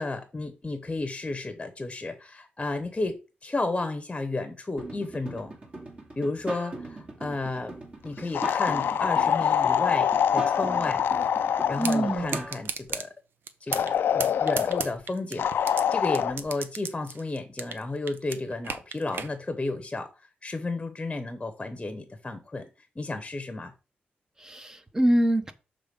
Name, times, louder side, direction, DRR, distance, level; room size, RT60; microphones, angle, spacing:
voice 1, 0.0-5.5 6.2-7.7 8.0-11.0 11.7-13.1 13.6-15.5 15.9-22.7 23.0-23.7, left 2 dB, 20° left, 0.9 m, -32 dB
sound 1, 4.8-12.6, right 2 dB, 40° right, 2.4 m, -40 dB
sound 2, 8.3-12.3 13.7-14.9 15.4-16.3, left 8 dB, 75° left, 0.4 m, -25 dB
voice 2, 11.8-12.4 24.4-25.5, right 1 dB, 15° right, 0.9 m, -24 dB
sound 3, 11.8-12.0 12.3-13.1 13.5-13.9 14.2-15.8 16.1-17.8 18.1-19.3, right 6 dB, 70° right, 0.7 m, -33 dB
6.7 x 3.7 x 5.2 m
cardioid pair, 85°, 4 cm